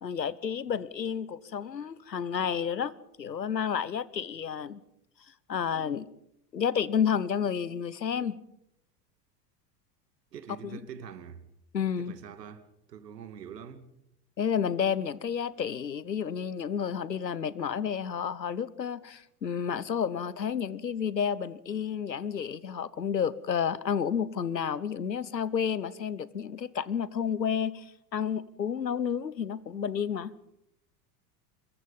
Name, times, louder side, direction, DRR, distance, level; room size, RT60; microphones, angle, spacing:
voice 1, 0.0-2.9 3.2-4.8 5.5-6.1 6.5-8.4 10.6-10.8 11.7-12.1 14.4-27.8 28.1-30.3, left 7 dB, 90° left, 1.1 m, -30 dB
voice 2, 10.3-11.4 12.0-13.9, right 7 dB, 75° right, 2.3 m, -45 dB
25.0 x 22.5 x 5.5 m
figure-of-eight pair, 80°, 49 cm